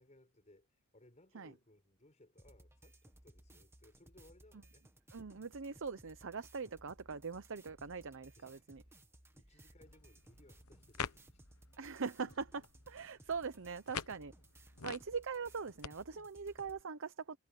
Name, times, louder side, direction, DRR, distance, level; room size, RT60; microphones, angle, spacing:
voice 1, 0.0-4.9 8.4-11.4, left 1 dB, 30° left, 6.0 m, -65 dB
sound 1, 2.4-16.8, right 1 dB, 10° right, 1.9 m, -62 dB
voice 2, 5.1-8.8 11.8-14.3 14.8-17.4, right 5 dB, 60° right, 0.8 m, -42 dB
sound 2, 9.8-15.9, left 6 dB, 80° left, 1.0 m, -48 dB
head